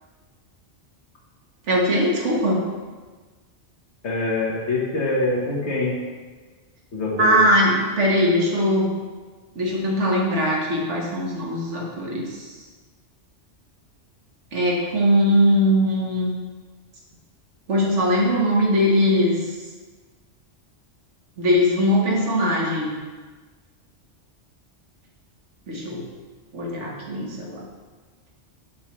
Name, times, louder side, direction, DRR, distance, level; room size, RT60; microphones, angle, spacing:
voice 1, 1.7-2.6 7.2-8.9 9.5-12.5 14.5-16.3 17.7-19.5 21.4-22.9 25.7-26.1 26.5-27.6, equal, 80° right, -2 dB, 1.5 m, -20 dB
voice 2, 4.0-6.0 6.9-7.4, left 2 dB, 70° left, -3 dB, 1.5 m, -24 dB
6.8 x 5.5 x 3.0 m, 1.4 s
omnidirectional pair, 1.2 m